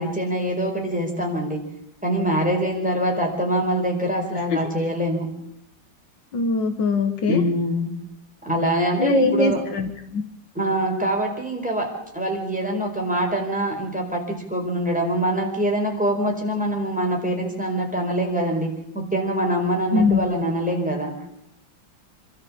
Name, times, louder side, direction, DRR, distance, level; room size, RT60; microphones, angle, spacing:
voice 1, 0.0-1.6 2.0-5.3 7.3-7.9 8.4-9.6 10.5-18.7 18.9-21.1, right 1 dB, 5° right, 2 dB, 4.4 m, -24 dB
voice 2, 6.3-7.4 9.0-10.2 19.9-20.2, left 3 dB, 70° left, 7 dB, 2.1 m, -21 dB
27.0 x 13.0 x 7.4 m, 0.78 s
omnidirectional pair, 2.1 m